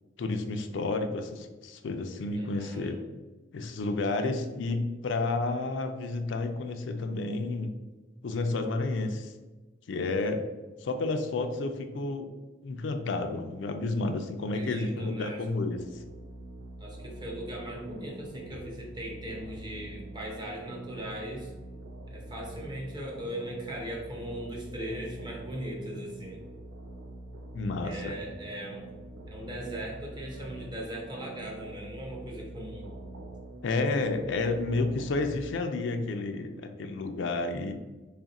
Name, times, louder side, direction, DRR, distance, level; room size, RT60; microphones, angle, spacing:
voice 1, 0.2-3.0 3.5-7.7 8.2-9.3 9.9-10.4 10.8-12.3 12.6-15.8 27.5-28.1 33.6-37.7, left 3 dB, 80° left, 6 dB, 0.4 m, -31 dB
voice 2, 2.3-3.0 14.5-15.4 16.8-21.5 22.1-26.5 27.8-28.9 29.3-32.9, right 1 dB, 25° right, -1 dB, 0.8 m, -39 dB
sound 1, 15.7-35.4, right 1 dB, 90° right, 0.5 m, -45 dB
3.5 x 2.4 x 4.0 m, 1.2 s
head